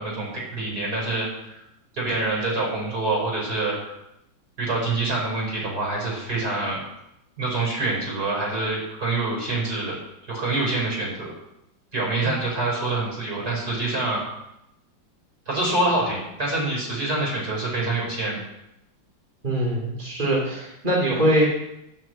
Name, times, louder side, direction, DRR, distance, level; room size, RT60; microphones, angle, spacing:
voice 1, 0.0-1.5 2.0-3.8 4.6-6.8 7.4-9.9 10.3-11.3 11.9-14.2 15.5-18.4, right 2 dB, 55° right, -3 dB, 5.9 m, -26 dB
voice 2, 19.4-21.4, right 1 dB, 25° right, -5 dB, 3.6 m, -23 dB
12.0 x 7.0 x 7.8 m, 0.85 s
omnidirectional pair, 2.0 m